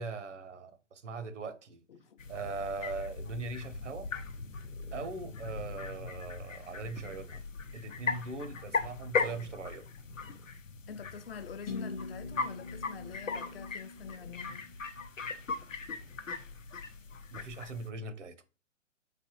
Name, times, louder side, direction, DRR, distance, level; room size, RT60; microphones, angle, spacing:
voice 1, 0.0-1.8 2.3-4.1 4.9-7.4 7.7-9.9 17.3-18.4, right 4 dB, 70° right, 0.7 m, -40 dB
voice 2, 1.9-2.2 10.9-14.7, left 7 dB, 50° left, 0.6 m, -46 dB
sound 1, 2.2-17.9, left 4 dB, 85° left, 0.7 m, -39 dB
sound 2, 11.7-15.5, left 3 dB, 5° left, 0.5 m, -44 dB
4.2 x 3.3 x 2.8 m
figure-of-eight pair, 120°, 38 cm